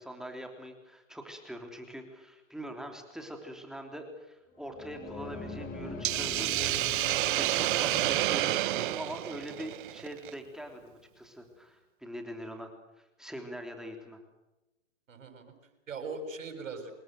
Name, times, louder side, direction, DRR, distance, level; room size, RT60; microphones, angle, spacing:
voice 1, 0.0-6.8 7.4-14.2, equal, ahead, 4 dB, 3.3 m, -43 dB
sound 1, 4.5-9.2, left 1 dB, 20° left, 4.5 m, -42 dB
Hiss, 6.0-10.3, right 16 dB, 40° right, 0.9 m, -29 dB
voice 2, 7.7-8.2 15.1-15.5 15.9-16.9, right 4 dB, 80° right, 7 dB, 7.1 m, -40 dB
27.0 x 21.0 x 7.8 m, 0.99 s
hypercardioid pair, 135°, 38 cm